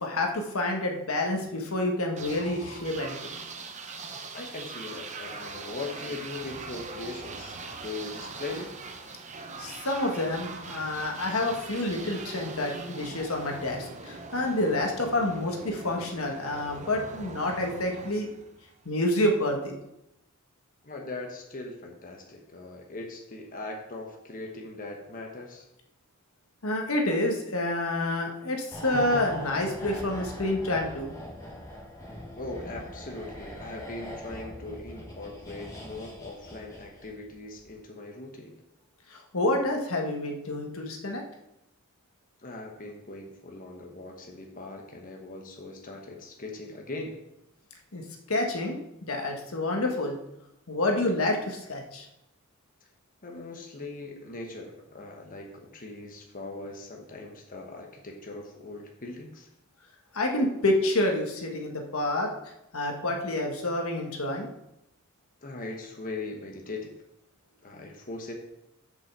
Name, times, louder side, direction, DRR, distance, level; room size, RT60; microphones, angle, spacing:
voice 1, 0.0-3.4 9.6-18.3 18.8-19.7 26.6-31.1 39.1-41.2 47.9-48.0 48.3-48.8 49.1-50.2 50.7-52.1 60.1-62.3 62.7-64.5, left 1 dB, 80° left, 1 dB, 1.4 m, -28 dB
sound 1, 2.2-18.9, right 3 dB, 35° right, 0.8 m, -41 dB
voice 2, 4.3-8.7 20.8-25.7 32.4-38.5 42.4-47.2 53.2-59.5 65.4-66.9 67.6-68.3, left 2 dB, 40° left, 1 dB, 1.2 m, -40 dB
sound 2, 28.7-37.2 37.5-37.7, left 1 dB, 15° left, 1.8 m, -41 dB
6.6 x 5.5 x 6.7 m, 0.86 s
head